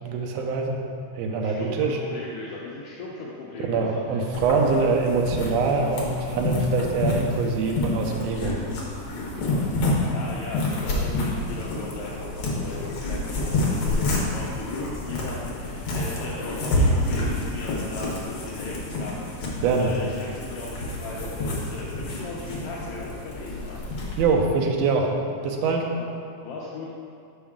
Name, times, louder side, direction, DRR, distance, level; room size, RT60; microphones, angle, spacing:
voice 1, 0.0-0.8 1.1-2.0 3.7-8.6 19.6-19.9 24.2-25.1 25.4-25.9, right 4 dB, 75° right, 1 dB, 1.7 m, -24 dB
voice 2, 1.4-4.2 4.7-4.9 9.4-23.8 26.0-26.1 26.4-26.9, left 3 dB, 75° left, -5 dB, 1.4 m, -37 dB
sound 1, 4.3-24.2, left 1 dB, 60° left, 1.7 m, -28 dB
7.1 x 5.6 x 3.6 m, 2.5 s
omnidirectional pair, 3.4 m